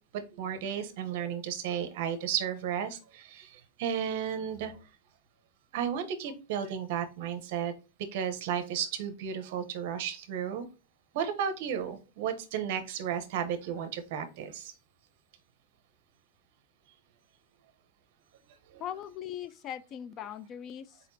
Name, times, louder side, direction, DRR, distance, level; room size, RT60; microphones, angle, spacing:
voice 1, 0.4-4.7 5.7-7.7 8.1-10.7 11.1-14.7, right 8 dB, 60° right, 0.8 m, -33 dB
voice 2, 18.8-21.0, left 10 dB, 30° left, 0.3 m, -40 dB
4.4 x 4.2 x 2.7 m
supercardioid pair, 155°, 0 cm